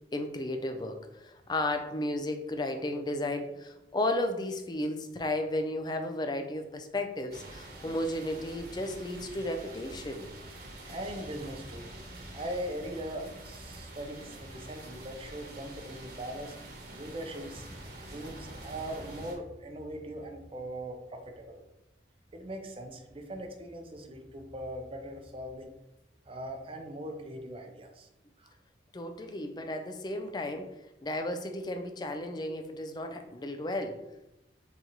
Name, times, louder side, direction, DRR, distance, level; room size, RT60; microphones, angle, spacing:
voice 1, 0.1-10.3 28.9-30.7 31.0-34.0, left 1 dB, 25° left, 6 dB, 0.4 m, -34 dB
sound 1, 7.3-19.4, right 1 dB, 55° right, 1.1 m, -46 dB
voice 2, 10.9-11.9 12.3-16.6 17.0-17.7 18.1-21.6 22.3-25.7 26.3-28.1 28.4-28.5, right 1 dB, 30° right, 4 dB, 0.5 m, -40 dB
3.8 x 3.0 x 4.0 m, 0.92 s
head